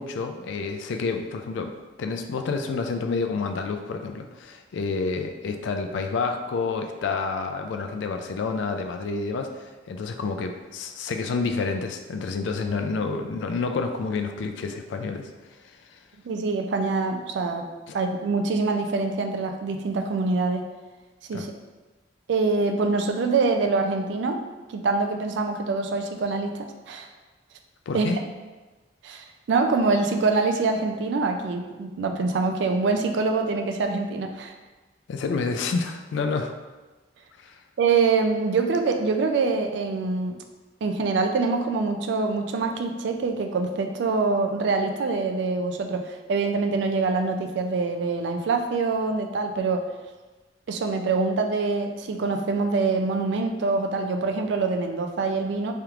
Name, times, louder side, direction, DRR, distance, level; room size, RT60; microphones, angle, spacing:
voice 1, 0.0-15.3 15.9-16.0 17.9-18.0 21.3-21.5 27.9-28.2 35.1-36.6 37.4-37.6, left 4 dB, 70° left, 6 dB, 0.3 m, -29 dB
voice 2, 16.3-17.7 17.9-20.6 21.3-21.5 22.3-24.4 24.7-27.1 27.9-28.1 29.0-34.5 37.8-40.4 40.8-49.9 50.7-55.7, right 4 dB, 65° right, 5 dB, 0.3 m, -25 dB
3.4 x 2.4 x 2.9 m, 1.2 s
head